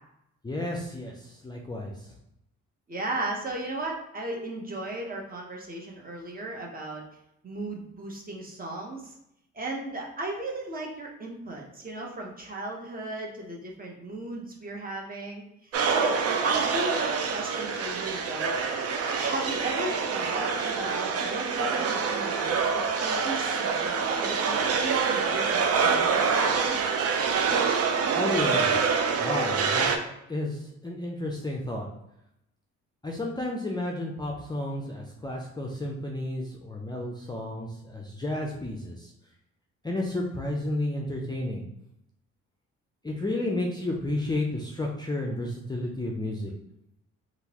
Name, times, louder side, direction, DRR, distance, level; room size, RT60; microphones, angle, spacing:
voice 1, 0.4-1.9 28.1-28.8 29.2-30.0 30.3-31.9 33.0-39.1 39.8-41.7 43.0-46.5, left 1 dB, 15° left, -1 dB, 0.5 m, -32 dB
voice 2, 2.9-7.0 7.4-9.1 9.5-18.6 19.1-26.8, right 2 dB, 30° right, 0 dB, 0.9 m, -36 dB
sound 1, 15.7-30.0, right 5 dB, 55° right, 0.5 m, -26 dB
3.6 x 2.5 x 2.9 m, 0.80 s
cardioid pair, 90°, 30 cm